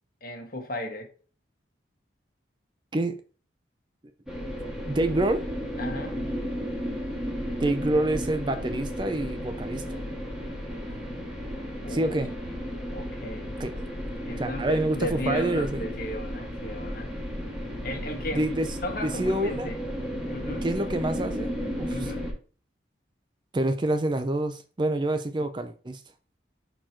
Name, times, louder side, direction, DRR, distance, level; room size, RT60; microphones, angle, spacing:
voice 1, 0.2-1.1 5.8-6.2 11.8-12.1 12.9-13.6 14.2-17.1 17.8-18.5 18.8-19.8 20.3-20.7 21.9-22.3, left 1 dB, 50° left, 1.5 m, -35 dB
sound 1, 4.3-22.3, equal, 5° right, 1.7 m, -33 dB
voice 2, 4.8-5.4 7.6-10.1 11.9-12.3 13.6-13.9 14.4-15.9 18.3-18.7 19.0-19.7 20.6-21.5 21.8-22.1 23.5-26.0, right 1 dB, 25° right, 0.4 m, -27 dB
5.9 x 4.5 x 4.5 m
head